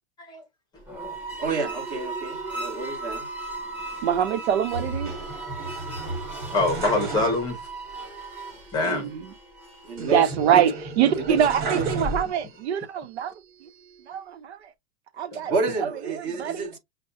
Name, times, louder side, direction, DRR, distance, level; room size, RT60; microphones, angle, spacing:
sound 1, 0.8-10.2, right 3 dB, 5° right, 1.1 m, -37 dB
voice 1, 1.4-3.3 9.8-10.6 11.3-11.4 11.7-11.9 15.5-16.8, right 4 dB, 30° right, 1.6 m, -29 dB
voice 2, 4.0-5.1 8.8-9.3 10.0-13.3 13.6-13.7 14.1-14.7 15.2-15.5 15.8-16.7, right 9 dB, 85° right, 0.9 m, -24 dB
sound 2, 4.7-7.8 8.1-8.2 10.0-12.7 13.2-14.1, right 2 dB, 50° right, 1.9 m, -34 dB
voice 3, 6.5-7.6 8.7-9.1 15.3-15.5, left 2 dB, 15° left, 0.8 m, -25 dB
6.5 x 2.3 x 2.5 m
supercardioid pair, 170°, 32 cm